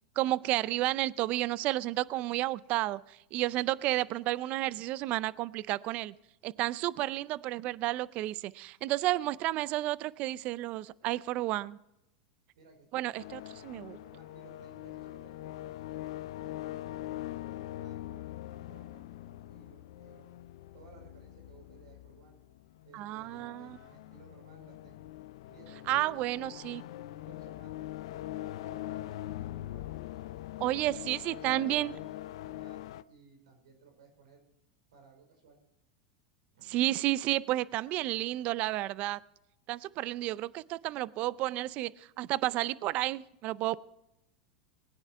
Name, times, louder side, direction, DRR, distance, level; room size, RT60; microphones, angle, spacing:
voice 1, 0.2-6.1 6.4-11.8 12.9-13.9 22.9-23.8 25.9-26.8 30.6-31.9 36.7-39.2 39.7-41.9 42.2-43.8, right 16 dB, 50° right, 0.5 m, -31 dB
voice 2, 12.5-13.1 13.5-16.1 16.4-17.0 17.4-18.3 18.6-20.3 20.7-22.4 22.8-25.1 25.5-27.9 28.2-30.4 31.0-34.4 34.9-35.6 36.5-37.1, right 4 dB, 80° right, 4.9 m, -59 dB
sound 1, 13.2-33.0, left 14 dB, 70° left, 0.5 m, -43 dB
20.0 x 9.8 x 4.6 m
hypercardioid pair, 110°, 3 cm